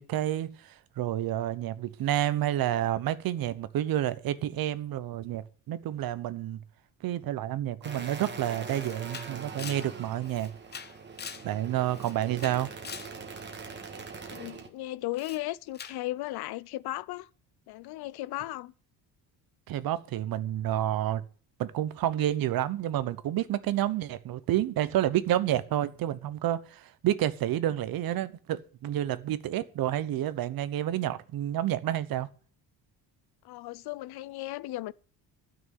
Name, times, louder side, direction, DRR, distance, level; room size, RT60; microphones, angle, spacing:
voice 1, 0.0-6.6 7.0-10.5 11.4-12.7 19.7-21.2 21.6-32.3, right 12 dB, 65° right, 1.0 m, -29 dB
sound 1, 7.8-14.7, right 4 dB, 30° right, 1.8 m, -42 dB
Camera, 8.3-8.4 8.7-11.5 11.9-13.2 15.1-15.4 15.7-16.0, left 7 dB, 25° left, 0.7 m, -43 dB
voice 2, 14.3-17.3 17.7-18.7 33.4-34.9, left 17 dB, 75° left, 0.7 m, -36 dB
13.0 x 6.2 x 9.2 m
cardioid pair, 155°, 38 cm